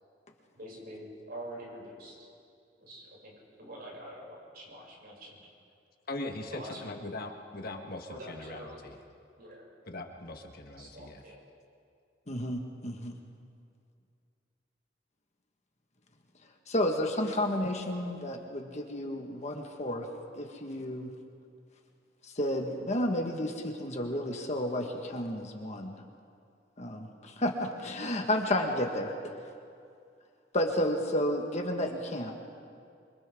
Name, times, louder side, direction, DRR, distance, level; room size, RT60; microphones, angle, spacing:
voice 1, 0.5-2.2 2.8-3.3 3.6-5.4 6.4-6.8 8.1-8.8 9.4-10.0 10.8-11.4, right 1 dB, 60° right, -4 dB, 7.3 m, -45 dB
voice 2, 6.1-9.0 9.9-11.2, left 2 dB, 55° left, 4 dB, 1.5 m, -40 dB
voice 3, 12.3-13.1 16.7-20.1 20.3-21.1 22.3-26.0 26.8-29.1 30.5-32.3, left 1 dB, 40° left, 3 dB, 1.7 m, -31 dB
28.0 x 24.5 x 3.8 m, 2.4 s
head